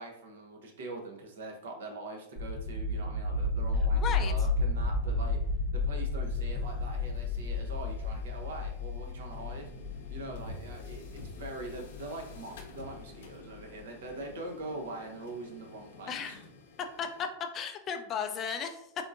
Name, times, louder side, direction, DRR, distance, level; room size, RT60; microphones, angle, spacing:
voice 1, 0.0-5.4 5.7-9.7 10.1-16.4, right 2 dB, 80° right, 2 dB, 0.8 m, -43 dB
sound 1, 2.4-13.0, left 3 dB, 40° right, 0.6 m, -32 dB
voice 2, 4.0-4.3 16.1-16.4 17.0-17.3 17.5-18.8, left 7 dB, 30° left, 7 dB, 0.3 m, -35 dB
sound 2, 6.2-17.2, left 2 dB, 75° left, 0.6 m, -51 dB
3.6 x 2.5 x 2.4 m, 0.75 s
supercardioid pair, 150°, 0 cm